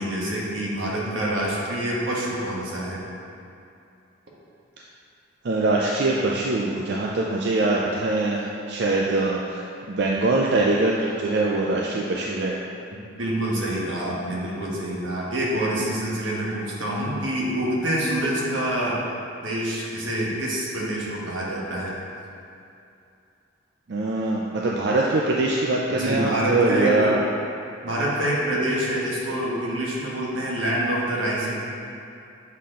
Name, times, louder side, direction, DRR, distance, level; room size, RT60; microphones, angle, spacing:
voice 1, 0.0-3.0 13.2-19.1 19.4-21.9 25.9-27.1 27.8-31.5, right 1 dB, 85° right, -5 dB, 1.3 m, -26 dB
voice 2, 5.4-12.6 23.9-27.2, right 2 dB, 60° right, -3 dB, 0.4 m, -23 dB
7.3 x 4.2 x 3.7 m, 2.6 s
head